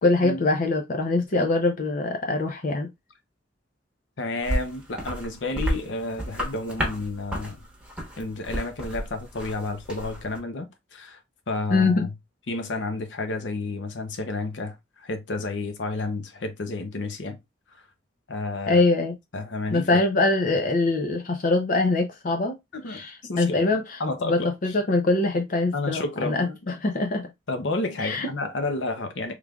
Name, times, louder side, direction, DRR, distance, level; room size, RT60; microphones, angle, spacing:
voice 1, 0.0-2.9 11.7-12.1 18.7-19.2 19.7-22.5 22.9-24.0 24.2-27.3 28.0-28.3, left 2 dB, 50° left, 0.6 m, -23 dB
voice 2, 4.2-7.6 8.2-11.2 11.5-12.1 12.5-17.4 18.3-18.8 19.3-20.0 22.7-23.6 24.0-24.5 25.7-26.8 27.5-29.3, left 2 dB, 90° left, 0.7 m, -31 dB
sound 1, 4.4-10.4, equal, 5° right, 1.0 m, -32 dB
3.6 x 3.2 x 2.3 m
head